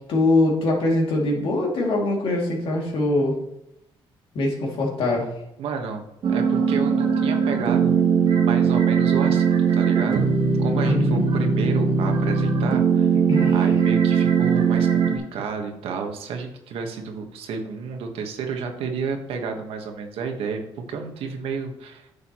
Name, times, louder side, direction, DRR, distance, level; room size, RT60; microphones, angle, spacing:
voice 1, 0.1-3.4 4.3-5.3 10.8-11.2 13.3-13.6, left 2 dB, 65° left, -1 dB, 2.5 m, -22 dB
voice 2, 5.6-10.3 10.6-13.1 13.5-20.6 20.9-22.1, right 5 dB, 80° right, 4 dB, 1.4 m, -31 dB
sound 1, 6.2-15.2, right 6 dB, 55° right, 1.4 m, -20 dB
9.7 x 6.8 x 3.0 m, 0.83 s
cardioid pair, 105°, 10 cm